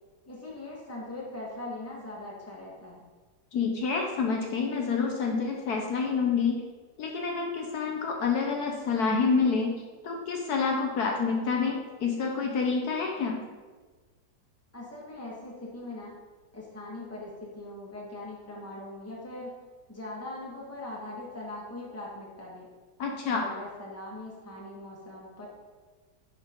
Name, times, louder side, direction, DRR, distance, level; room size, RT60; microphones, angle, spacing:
voice 1, 0.3-3.0 14.7-16.1 16.5-19.6 19.9-22.7 23.3-25.5, left 2 dB, 10° left, -4 dB, 1.5 m, -41 dB
voice 2, 3.5-6.6 7.0-9.7 10.0-13.4 23.0-23.5, left 5 dB, 70° left, 1 dB, 1.3 m, -28 dB
10.5 x 4.2 x 3.7 m, 1.4 s
omnidirectional pair, 1.8 m